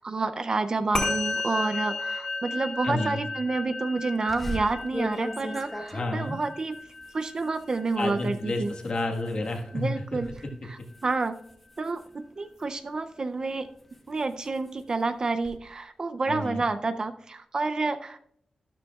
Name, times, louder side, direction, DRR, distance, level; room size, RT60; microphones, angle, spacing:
voice 1, 0.0-6.8 7.1-8.7 9.7-10.3 10.6-11.4 11.8-13.7 14.1-18.2, right 3 dB, 35° right, 10 dB, 0.4 m, -29 dB
Musical instrument, 0.9-10.5, left 3 dB, 25° left, 2.2 m, -35 dB
voice 2, 2.8-3.2 5.9-6.4 8.0-9.9 16.3-16.6, left 2 dB, 45° left, 2 dB, 1.4 m, -30 dB
sound 1, 4.3-9.7 10.0-10.4 10.8-12.8 13.4-15.6, left 1 dB, 5° left, 0.9 m, -40 dB
12.5 x 12.0 x 2.3 m, 0.69 s
wide cardioid pair, 170°, 2 cm